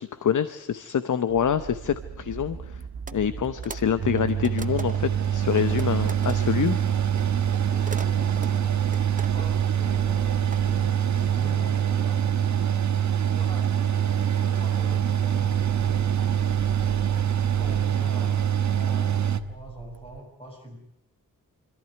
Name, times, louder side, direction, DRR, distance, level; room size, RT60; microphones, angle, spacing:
voice 1, 0.0-2.8 3.1-6.8, left 8 dB, 60° left, 12 dB, 0.9 m, -26 dB
sound 1, 1.3-20.2, right 8 dB, 75° right, 1.5 m, -41 dB
sound 2, 3.1-3.2 3.4-5.2 5.5-6.4 7.1-9.6 9.9-10.6, right 4 dB, 25° right, 0.8 m, -40 dB
Mechanical fan, 4.0-19.4, right 9 dB, 55° right, 1.3 m, -24 dB
voice 2, 7.7-8.7 9.2-12.2 13.2-16.1 17.1-18.5 18.7-19.2 19.5-20.8, equal, 15° left, 0 dB, 6.9 m, -44 dB
26.0 x 14.5 x 9.5 m, 0.79 s
wide cardioid pair, 170°, 34 cm